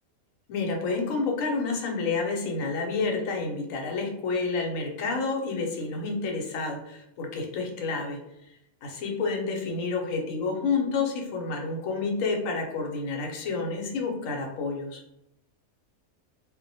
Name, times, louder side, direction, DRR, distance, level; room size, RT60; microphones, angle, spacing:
voice 1, 0.5-8.2 8.8-15.0, left 4 dB, 75° left, 1 dB, 1.0 m, -29 dB
2.4 x 2.1 x 2.6 m, 0.83 s
omnidirectional pair, 1.5 m